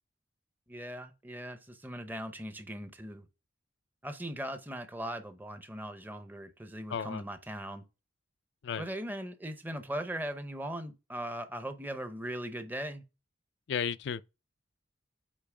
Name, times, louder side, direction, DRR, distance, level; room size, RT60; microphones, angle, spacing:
voice 1, 0.7-3.3 4.0-7.8 8.8-13.0, right 1 dB, 10° right, 0.7 m, -39 dB
voice 2, 6.9-7.2 8.6-8.8 13.7-14.2, left 7 dB, 60° left, 0.4 m, -33 dB
8.4 x 3.0 x 4.9 m
head